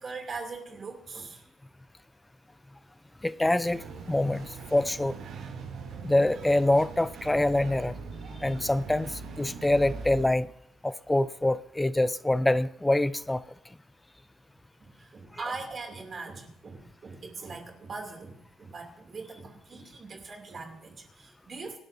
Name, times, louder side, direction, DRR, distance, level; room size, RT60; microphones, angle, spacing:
voice 1, 0.0-1.5 14.8-21.8, right 4 dB, 35° right, 2.6 m, -41 dB
voice 2, 3.2-5.2 6.0-7.9 8.4-10.5 10.8-13.4, left 1 dB, 10° left, 0.5 m, -25 dB
sound 1, 3.6-10.3, right 4 dB, 70° right, 5.7 m, -41 dB
25.0 x 12.0 x 2.6 m
cardioid pair, 135°, 0 cm